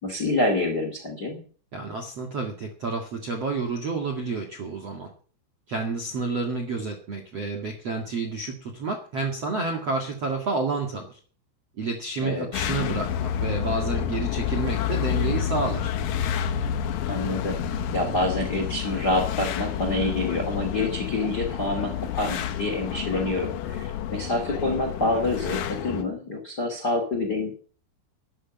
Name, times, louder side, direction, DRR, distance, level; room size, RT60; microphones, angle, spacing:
voice 1, 0.0-1.4 12.2-12.5 17.0-17.6 17.9-27.5, left 2 dB, 30° left, 4 dB, 2.0 m, -27 dB
voice 2, 1.7-5.1 5.7-11.2 11.8-15.9, right 3 dB, 50° right, 2 dB, 2.0 m, -30 dB
sound 1, 12.5-26.0, left 9 dB, 80° left, 1.9 m, -29 dB
13.0 x 10.5 x 7.3 m, 0.43 s
omnidirectional pair, 5.8 m